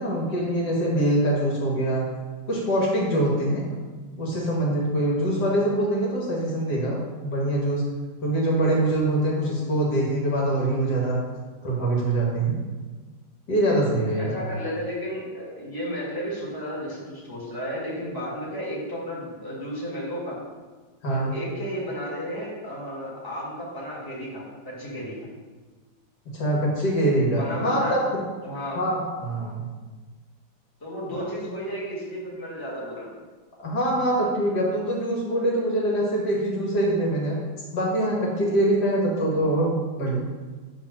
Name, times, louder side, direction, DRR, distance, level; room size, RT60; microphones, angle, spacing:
voice 1, 0.0-2.0 2.5-3.6 4.2-7.8 8.2-11.2 11.6-12.6 13.5-14.4 21.0-21.3 26.3-28.0 28.7-29.7 31.1-31.3 33.6-37.4 37.7-40.2, right 1 dB, 65° left, -3 dB, 2.0 m, -24 dB
voice 2, 14.2-20.4 21.1-25.3 27.4-28.0 28.4-28.8 30.8-33.2, equal, 10° left, -6 dB, 2.0 m, -33 dB
8.5 x 3.5 x 6.0 m, 1.4 s
omnidirectional pair, 1.9 m